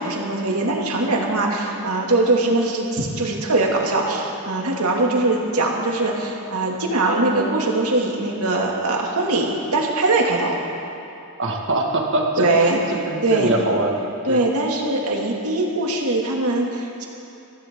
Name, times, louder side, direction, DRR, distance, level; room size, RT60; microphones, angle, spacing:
voice 1, 0.0-10.6 12.4-12.8 13.2-13.5 14.3-17.0, right 2 dB, 85° right, -1 dB, 2.4 m, -21 dB
voice 2, 11.4-12.5 13.1-13.9 14.3-14.4, right 2 dB, 60° right, 0 dB, 1.9 m, -22 dB
24.5 x 15.0 x 3.8 m, 2.8 s
head